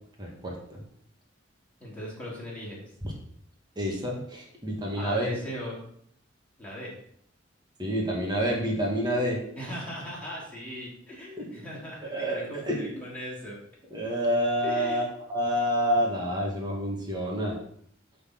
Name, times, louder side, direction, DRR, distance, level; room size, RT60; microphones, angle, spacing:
voice 1, 0.2-0.8 3.0-3.1 3.7-5.3 7.8-9.4 11.4-11.5 12.1-13.0 13.9-17.6, equal, 20° right, -1 dB, 1.6 m, -28 dB
voice 2, 1.8-2.9 5.0-5.8 6.6-7.0 9.6-13.6 14.6-15.0, left 1 dB, 5° left, -6 dB, 2.9 m, -38 dB
7.8 x 4.0 x 6.3 m, 0.66 s
head